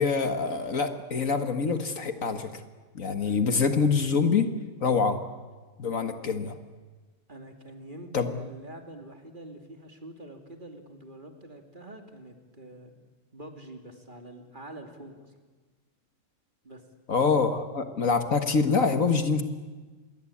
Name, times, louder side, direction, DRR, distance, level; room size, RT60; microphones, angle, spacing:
voice 1, 0.0-2.5 3.0-4.5 4.8-5.2 5.8-6.5 8.1-8.3 17.1-19.4, left 5 dB, 60° left, 8 dB, 2.0 m, -25 dB
voice 2, 3.2-3.6 4.9-5.1 7.3-12.9 13.3-15.2 16.6-16.8, right 1 dB, 30° right, 4 dB, 2.9 m, -45 dB
27.5 x 21.0 x 8.6 m, 1.3 s
omnidirectional pair, 1.6 m